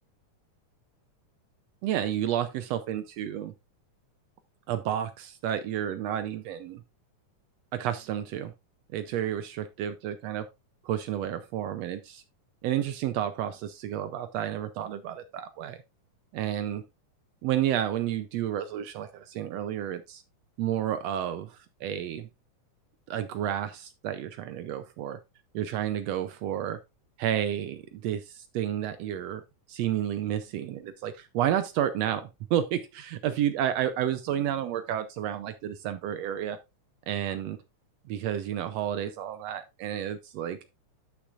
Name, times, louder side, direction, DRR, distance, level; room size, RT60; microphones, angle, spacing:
voice 1, 1.8-3.5 4.7-6.8 7.7-8.5 8.9-10.5 10.8-12.2 12.6-15.8 16.3-16.8 17.4-20.2 20.6-22.3 23.1-25.2 25.5-26.8 27.2-29.4 29.7-36.6 37.1-37.6 38.1-40.7, right 10 dB, 80° right, 11 dB, 1.5 m, -31 dB
11.5 x 6.3 x 2.5 m, 0.23 s
omnidirectional pair, 3.6 m